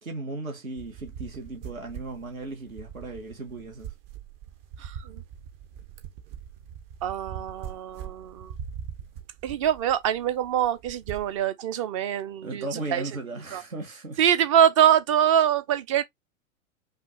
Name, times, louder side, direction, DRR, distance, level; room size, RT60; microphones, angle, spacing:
voice 1, 0.0-3.9 12.4-14.2, right 3 dB, 80° right, 1.3 m, -36 dB
sound 1, 0.8-11.4, right 8 dB, 45° right, 0.9 m, -42 dB
voice 2, 4.8-5.2 7.0-8.5 9.4-13.0 13.5-13.6 14.2-16.0, right 9 dB, 25° right, 0.4 m, -24 dB
5.7 x 2.4 x 2.7 m
figure-of-eight pair, 100°, 41 cm